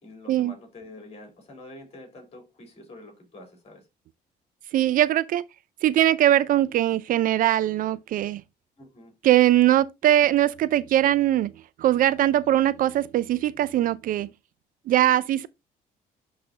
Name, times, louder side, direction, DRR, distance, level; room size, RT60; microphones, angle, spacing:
voice 1, 0.0-3.9 8.8-9.1, left 2 dB, 35° left, 3.8 m, -46 dB
voice 2, 4.7-5.4 5.8-8.4 9.2-11.5 11.8-14.3 14.9-15.5, right 13 dB, 55° right, 0.4 m, -21 dB
10.0 x 3.9 x 2.8 m
cardioid pair, 110°, 17 cm